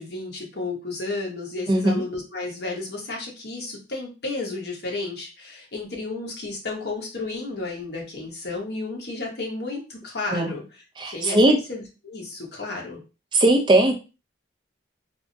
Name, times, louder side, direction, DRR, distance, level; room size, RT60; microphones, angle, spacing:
voice 1, 0.0-13.0, left 3 dB, 60° left, -1 dB, 1.0 m, -32 dB
voice 2, 1.7-2.0 10.3-10.5 11.0-11.6 13.3-14.0, right 1 dB, 25° right, 3 dB, 0.5 m, -19 dB
3.4 x 2.1 x 2.7 m, 0.31 s
head